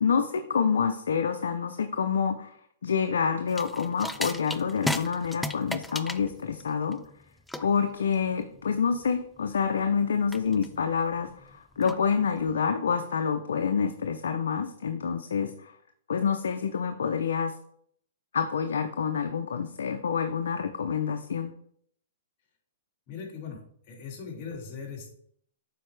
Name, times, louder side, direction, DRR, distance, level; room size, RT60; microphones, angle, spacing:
voice 1, 0.0-2.5 2.8-7.0 7.6-15.7 16.1-17.5 18.3-21.5, left 6 dB, 85° left, 6 dB, 0.6 m, -27 dB
sound 1, 3.5-12.5, left 1 dB, 5° left, 0.3 m, -37 dB
voice 2, 23.1-23.6 23.9-25.1, left 5 dB, 40° left, -2 dB, 2.5 m, -39 dB
7.8 x 4.7 x 3.3 m, 0.65 s
hypercardioid pair, 140°, 0 cm